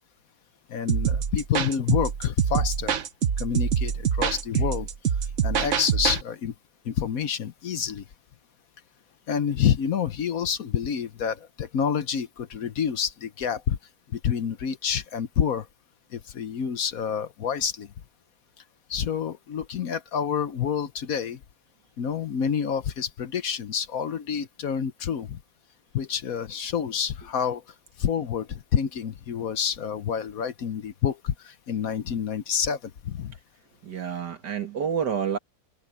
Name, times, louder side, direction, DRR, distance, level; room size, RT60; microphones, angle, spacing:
voice 1, 0.7-2.9 3.4-4.9 5.4-6.5 6.8-8.0 9.3-13.8 14.1-15.7 16.1-17.9 18.9-21.4 22.0-25.4 25.9-27.6 28.0-33.3, left 8 dB, 60° left, 1.2 m, -28 dB
sound 1, 0.9-6.2, right 8 dB, 50° right, 1.1 m, -25 dB
voice 2, 33.8-35.4, right 7 dB, 75° right, 2.6 m, -28 dB
omnidirectional pair, 1.8 m